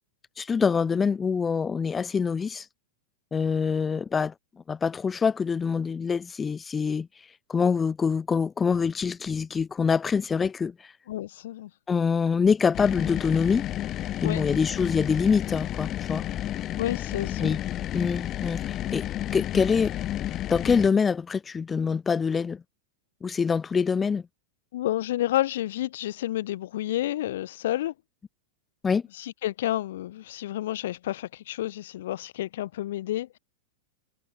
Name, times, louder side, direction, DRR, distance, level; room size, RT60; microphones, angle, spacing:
voice 1, 0.4-2.7 3.3-4.3 4.7-7.1 7.5-10.9 11.9-13.7 14.2-16.3 17.4-17.6 17.9-19.1 19.3-19.9 20.5-22.6 23.2-24.2 28.8-29.0, left 5 dB, 20° left, 0.6 m, -25 dB
voice 2, 11.1-11.7 14.2-14.4 16.8-17.6 24.7-27.9 29.2-33.4, left 14 dB, 70° left, 1.2 m, -30 dB
sound 1, 12.7-20.9, left 13 dB, 35° left, 1.0 m, -31 dB
hypercardioid pair, 105°, 0 cm